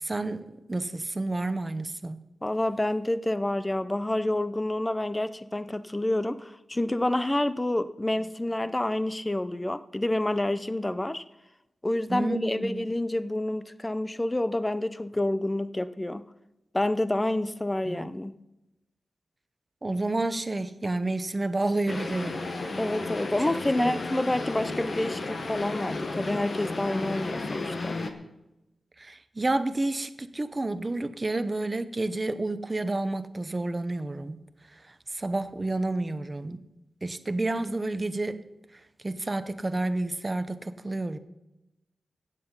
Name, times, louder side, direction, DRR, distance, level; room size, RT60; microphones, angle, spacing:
voice 1, 0.0-2.2 12.1-12.9 17.9-18.1 19.8-22.8 23.7-24.0 29.0-34.4 34.7-36.6 37.0-38.4 38.7-41.2, right 2 dB, 20° right, 0.7 m, -30 dB
voice 2, 2.4-11.2 11.8-16.2 16.7-18.3 22.8-28.0, left 1 dB, 15° left, 0.5 m, -28 dB
sound 1, 21.9-28.1, left 3 dB, 45° left, 1.1 m, -33 dB
15.5 x 9.1 x 5.5 m
wide cardioid pair, 155°, 0 cm